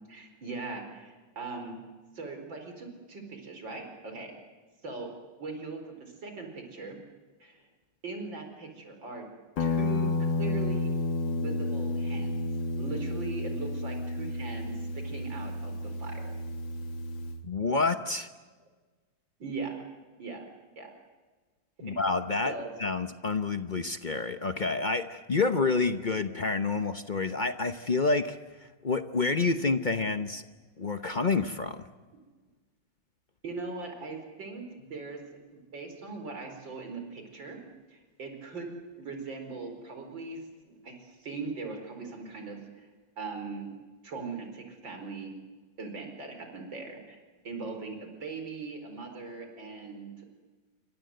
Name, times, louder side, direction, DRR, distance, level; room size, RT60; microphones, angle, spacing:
voice 1, 0.1-1.8 2.1-4.3 4.8-5.1 5.4-7.0 7.4-7.6 8.0-9.3 9.6-10.9 11.2-12.5 12.8-16.4 19.4-19.8 20.2-20.4 20.8-20.9 21.8-21.9 22.4-22.7 33.4-35.4 35.7-37.6 37.9-38.7 39.0-42.9 43.2-43.7 44.0-45.3 45.8-47.2 47.4-50.3, right 4 dB, 65° right, 4 dB, 5.3 m, -40 dB
Guitar, 9.6-17.4, left 2 dB, 65° left, 2.0 m, -31 dB
voice 2, 17.4-18.3 21.8-22.5 22.8-28.4 28.8-30.4 30.8-31.9, left 3 dB, 45° left, 9 dB, 0.6 m, -28 dB
28.5 x 24.5 x 7.9 m, 1.3 s
omnidirectional pair, 2.2 m